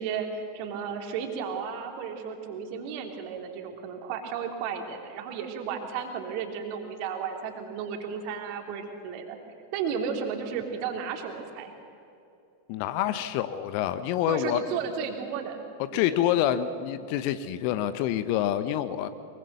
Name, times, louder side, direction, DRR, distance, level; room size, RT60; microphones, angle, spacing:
voice 1, 0.0-9.4 9.7-11.7 14.3-15.6 15.9-16.2, right 6 dB, 45° right, 4 dB, 3.1 m, -34 dB
voice 2, 12.7-14.6 15.9-19.1, left 11 dB, 45° left, 13 dB, 1.0 m, -27 dB
23.5 x 23.0 x 6.9 m, 2.7 s
figure-of-eight pair, 90°, 0 cm